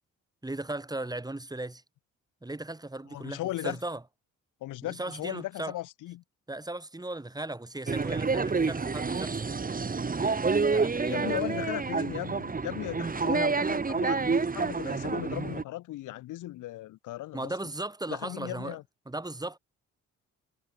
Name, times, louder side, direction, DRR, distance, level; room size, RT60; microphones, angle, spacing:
voice 1, 0.4-1.8 2.4-4.0 4.8-5.8 6.5-9.4 10.1-11.7 17.3-18.8 19.1-19.6, right 2 dB, 15° right, 3.9 m, -37 dB
voice 2, 3.1-3.8 4.6-6.2 11.1-17.5 18.1-18.8, left 16 dB, 90° left, 4.7 m, -37 dB
sound 1, 7.9-15.6, right 4 dB, 30° right, 3.5 m, -28 dB
cardioid pair, 90°, 30 cm